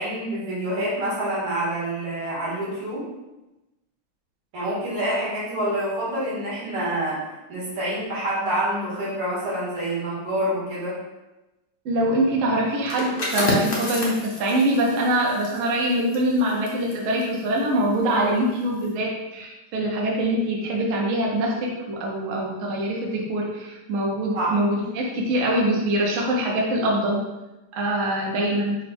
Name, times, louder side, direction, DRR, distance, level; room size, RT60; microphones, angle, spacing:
voice 1, 0.0-3.1 4.5-7.2 7.5-11.0 24.3-24.6, right 1 dB, 85° right, -7 dB, 2.7 m, -27 dB
voice 2, 11.8-27.2 27.7-28.8, right 1 dB, 55° right, -2 dB, 0.9 m, -24 dB
sound 1, 12.8-18.3 18.6-18.9, left 1 dB, 90° left, 0.4 m, -31 dB
5.4 x 2.3 x 4.3 m, 1.0 s
omnidirectional pair, 2.3 m